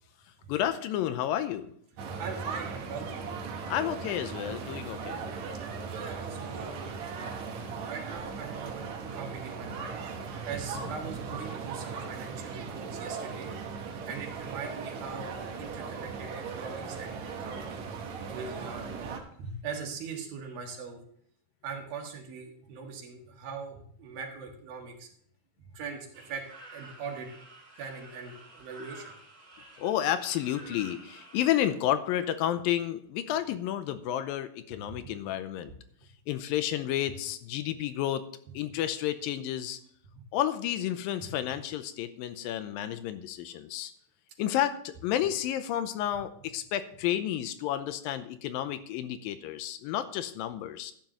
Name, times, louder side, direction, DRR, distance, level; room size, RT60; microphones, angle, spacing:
voice 1, 0.5-1.7 3.7-5.2 29.8-35.7 36.3-38.2 38.5-39.8 40.3-43.9 44.4-50.9, left 11 dB, 85° left, 11 dB, 2.4 m, -31 dB
sound 1, 2.0-19.2, right 5 dB, 60° right, 2.3 m, -38 dB
voice 2, 2.2-3.5 5.8-7.1 7.9-10.0 10.5-13.5 14.1-17.9 18.3-18.9 19.4-21.0 21.6-25.1 25.6-26.5 26.7-27.3 27.8-29.2 40.2-40.3, right 5 dB, 80° right, 1 dB, 3.5 m, -41 dB
sound 2, 26.1-31.7, right 2 dB, 15° right, 1.4 m, -51 dB
13.0 x 10.0 x 3.1 m, 0.63 s
omnidirectional pair, 4.1 m